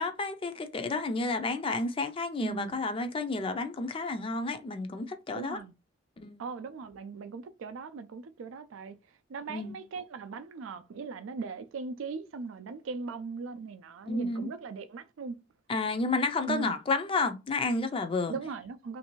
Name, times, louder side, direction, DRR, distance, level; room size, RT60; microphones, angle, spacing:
voice 1, 0.0-5.6 6.2-6.4 9.5-9.7 14.1-14.5 15.7-18.3, left 3 dB, 25° left, 0.4 m, -31 dB
voice 2, 2.4-2.8 5.3-5.7 6.4-9.0 9.3-15.4 16.5-16.8 18.3-19.0, right 5 dB, 90° right, 0.4 m, -39 dB
3.2 x 2.6 x 3.0 m
head